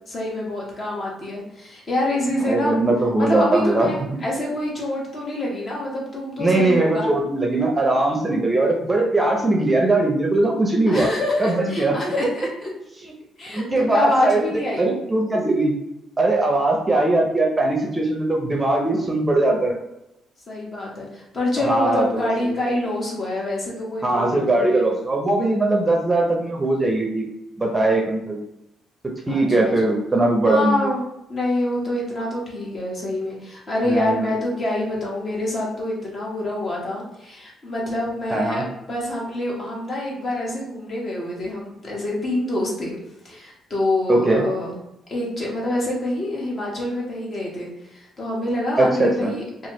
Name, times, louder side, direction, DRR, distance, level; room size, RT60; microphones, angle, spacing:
voice 1, 0.1-2.9 3.2-7.1 10.9-12.7 13.4-14.9 20.5-24.9 29.3-29.9 30.4-31.0 31.3-38.6 38.9-42.9 43.2-44.7 45.1-49.7, left 1 dB, 45° left, -4 dB, 1.2 m, -26 dB
voice 2, 2.5-3.9 6.4-11.1 11.4-12.1 13.5-14.4 14.8-15.7 16.2-19.8 21.6-22.6 24.0-27.2 27.6-28.4 29.3-30.9 33.9-34.2 38.3-38.7 44.1-44.4 48.8-49.3, right 2 dB, 20° right, 0 dB, 0.6 m, -20 dB
3.0 x 2.3 x 3.0 m, 0.86 s
cardioid pair, 90°, 0 cm